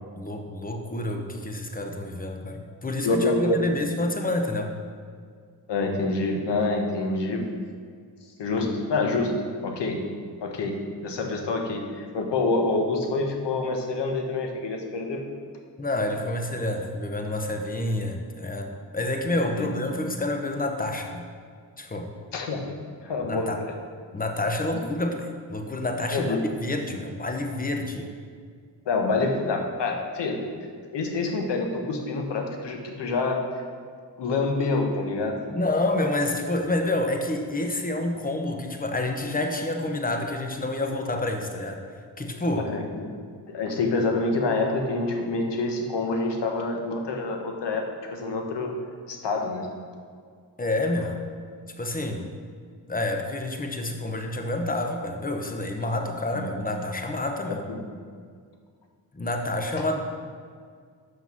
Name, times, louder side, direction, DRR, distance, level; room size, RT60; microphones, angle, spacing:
voice 1, 0.2-4.7 15.8-21.3 21.8-22.1 23.2-23.6 24.1-28.1 35.5-41.8 42.2-42.7 50.6-51.2 51.8-52.3 52.9-57.6 59.1-60.0, left 2 dB, 20° left, 4 dB, 0.9 m, -28 dB
voice 2, 3.0-3.8 5.7-7.4 8.4-9.3 9.6-10.0 10.4-15.2 19.6-19.8 22.3-22.6 23.0-23.5 26.1-26.4 28.9-30.4 30.9-33.6 34.2-35.4 42.6-43.1 43.5-47.8 48.1-48.8 49.1-49.7 56.3-56.6 57.5-57.8, left 3 dB, 70° left, 3 dB, 1.2 m, -27 dB
5.9 x 5.6 x 5.9 m, 2.1 s
cardioid pair, 60°, 44 cm